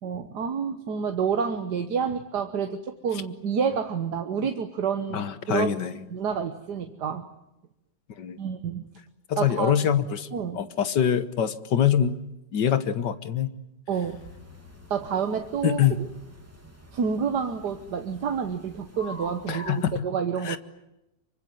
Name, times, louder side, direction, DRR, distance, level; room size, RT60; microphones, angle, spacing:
voice 1, 0.0-5.7 6.1-7.3 8.4-8.9 9.4-9.8 10.3-10.6 13.9-14.2 14.9-16.1 16.9-20.6, right 6 dB, 65° right, 7 dB, 1.8 m, -29 dB
voice 2, 5.1-5.9 8.2-8.4 9.3-10.3 10.5-12.2 12.5-13.5 15.6-16.0 19.5-20.1 20.5-20.6, left 9 dB, 75° left, 13 dB, 1.9 m, -24 dB
sound 1, 14.0-20.0, equal, 10° right, 3.1 m, -46 dB
25.5 x 24.5 x 9.2 m, 0.88 s
omnidirectional pair, 1.9 m